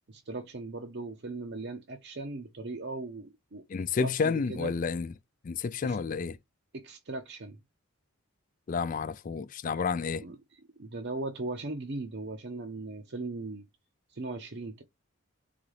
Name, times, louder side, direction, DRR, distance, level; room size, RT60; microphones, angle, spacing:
voice 1, 0.1-3.6 4.0-4.7 5.8-6.0 6.7-7.6 10.2-13.7 14.1-14.8, right 3 dB, 50° right, 0.7 m, -38 dB
voice 2, 3.7-5.1 5.4-6.4 8.7-10.3, left 5 dB, 35° left, 0.3 m, -30 dB
3.9 x 3.9 x 3.2 m
head